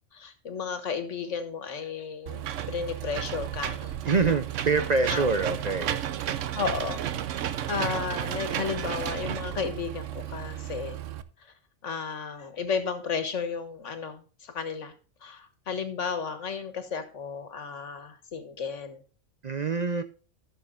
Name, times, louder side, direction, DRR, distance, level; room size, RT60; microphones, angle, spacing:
voice 1, 0.1-4.0 5.1-5.2 6.5-7.0 7.7-11.0 11.4-11.5 11.8-14.9 15.2-19.0, left 6 dB, 75° left, 1.7 m, -33 dB
Engine / Mechanisms, 2.3-11.2, right 11 dB, 85° right, 1.0 m, -33 dB
voice 2, 4.0-6.0 19.4-20.0, right 4 dB, 45° right, 0.6 m, -25 dB
15.0 x 6.6 x 2.5 m
omnidirectional pair, 1.3 m